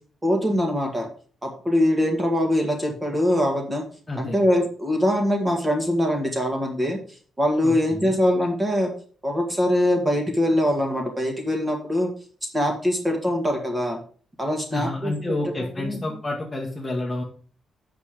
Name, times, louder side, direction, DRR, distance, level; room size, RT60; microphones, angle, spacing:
voice 1, 0.2-1.1 1.4-3.8 4.2-7.0 7.4-8.9 9.2-12.1 12.5-14.0 14.4-15.4 15.8-16.0, left 1 dB, 10° right, 2 dB, 1.8 m, -23 dB
voice 2, 4.1-4.4 7.6-8.2 14.7-17.2, left 2 dB, 15° left, 0 dB, 1.3 m, -29 dB
8.0 x 6.0 x 5.1 m, 0.43 s
wide cardioid pair, 175°, 0 cm